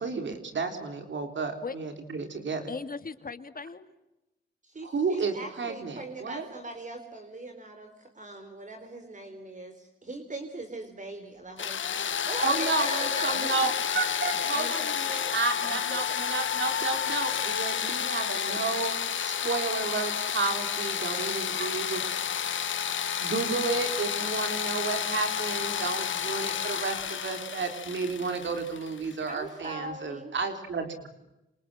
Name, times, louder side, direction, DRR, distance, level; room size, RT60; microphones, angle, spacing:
voice 1, 0.0-2.6 4.8-6.5 12.4-22.0 23.2-31.1, right 4 dB, 65° right, 6 dB, 3.6 m, -32 dB
voice 2, 2.7-3.9 13.3-13.7 14.0-14.1 14.3-16.2, left 4 dB, 45° left, 10 dB, 2.4 m, -40 dB
voice 3, 4.6-7.9 8.1-13.7 29.3-30.3, right 2 dB, 40° right, 6 dB, 4.0 m, -41 dB
sound 1, 11.6-29.3, left 8 dB, 70° left, 1.3 m, -30 dB
28.0 x 28.0 x 7.7 m, 0.96 s
cardioid pair, 65°, 21 cm